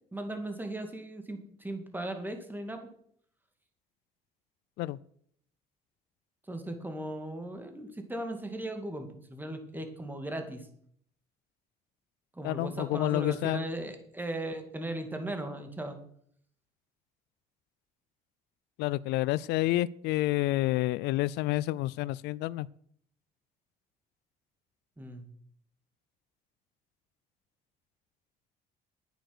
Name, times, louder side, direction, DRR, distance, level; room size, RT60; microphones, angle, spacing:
voice 1, 0.0-2.9 6.5-10.7 12.3-16.0 25.0-25.3, right 1 dB, 10° right, 6 dB, 2.4 m, -37 dB
voice 2, 12.4-13.7 18.8-22.7, left 17 dB, 85° left, 21 dB, 0.4 m, -29 dB
10.5 x 9.2 x 6.2 m, 0.65 s
cardioid pair, 110°, 17 cm